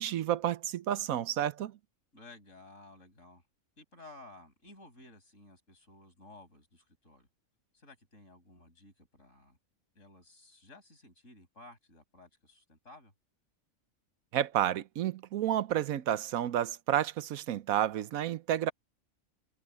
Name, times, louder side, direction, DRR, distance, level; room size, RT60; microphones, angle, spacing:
voice 1, 0.0-1.7 14.3-18.7, right 11 dB, 85° right, 1.2 m, -30 dB
voice 2, 2.1-3.4 3.8-7.3 7.7-9.6 9.9-13.1, left 2 dB, 65° left, 6.6 m, -55 dB
omnidirectional pair, 1.4 m